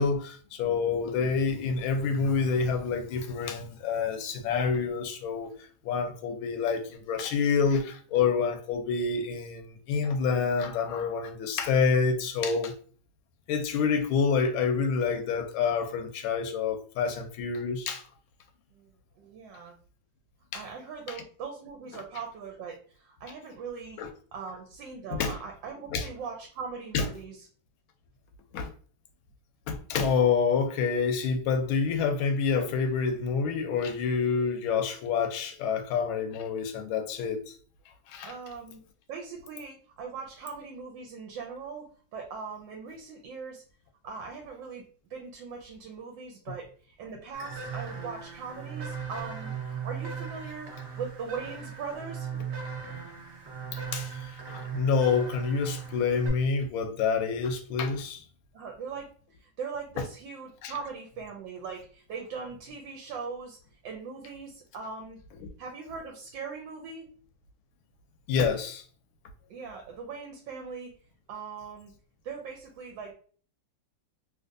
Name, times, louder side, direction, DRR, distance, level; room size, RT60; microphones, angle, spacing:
voice 1, 0.0-5.5 5.8-12.7 13.5-18.0 20.5-20.6 21.1-21.2 24.0-24.1 25.1-25.4 25.9-26.1 26.9-27.1 28.5-28.7 29.7-37.4 38.1-38.3 53.7-58.2 60.6-60.7 68.3-68.8, left 5 dB, 80° left, 1.4 m, -27 dB
voice 2, 18.7-19.7 20.5-24.0 24.3-27.5 38.2-38.8 39.1-43.6 44.0-52.3 58.5-59.1 59.4-65.2 65.6-67.1 69.5-70.9 71.3-71.9 72.2-73.1, right 5 dB, 70° right, 1.2 m, -40 dB
sound 1, 47.3-56.3, right 7 dB, 55° right, 0.8 m, -37 dB
3.3 x 2.8 x 2.5 m
omnidirectional pair, 2.3 m